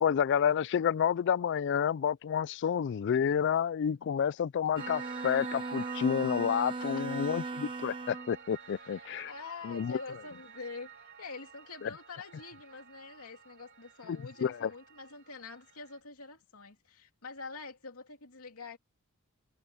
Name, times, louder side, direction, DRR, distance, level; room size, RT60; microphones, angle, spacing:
voice 1, 0.0-9.3 9.6-10.0 11.8-11.9 14.1-14.7, left 8 dB, 55° left, 0.3 m, -29 dB
Bowed string instrument, 4.8-8.4, right 3 dB, 25° right, 0.5 m, -38 dB
Piano, 4.8-16.0, right 6 dB, 55° right, 3.5 m, -48 dB
voice 2, 8.8-18.8, left 4 dB, 90° left, 2.6 m, -46 dB
head